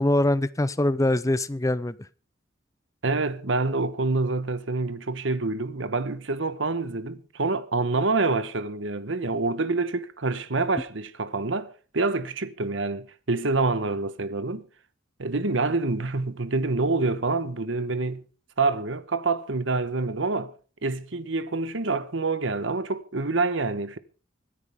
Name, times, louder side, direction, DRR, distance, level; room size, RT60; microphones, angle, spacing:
voice 1, 0.0-2.0, left 1 dB, 15° left, 0.6 m, -23 dB
voice 2, 3.0-14.6 15.2-18.2 18.6-20.5 20.8-24.0, right 3 dB, 70° right, 1.1 m, -27 dB
25.0 x 10.0 x 3.6 m
head